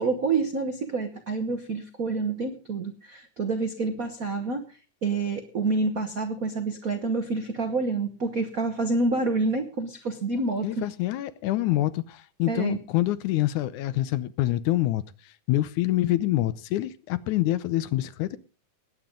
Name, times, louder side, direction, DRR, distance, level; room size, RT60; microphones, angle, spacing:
voice 1, 0.0-4.6 5.0-10.9 12.5-12.8, right 3 dB, 75° right, 0.7 m, -28 dB
voice 2, 10.6-15.0 15.5-18.4, left 15 dB, 80° left, 2.2 m, -26 dB
19.5 x 8.9 x 3.8 m
omnidirectional pair, 3.5 m